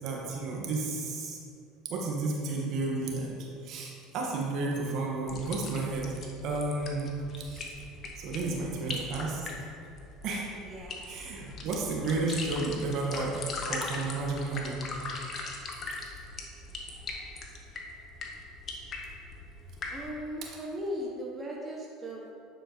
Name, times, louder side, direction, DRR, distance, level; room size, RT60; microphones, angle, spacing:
voice 1, 0.0-1.4 1.9-7.7 8.2-9.4 10.2-10.5 11.1-13.4 13.7-14.9, right 3 dB, 55° right, -2 dB, 1.3 m, -32 dB
sound 1, 5.3-20.1, left 3 dB, 40° left, 1.0 m, -40 dB
voice 2, 10.6-11.2 19.9-22.3, equal, 25° right, -2 dB, 0.9 m, -38 dB
9.3 x 4.5 x 3.0 m, 2.5 s
hypercardioid pair, 80°, 0 cm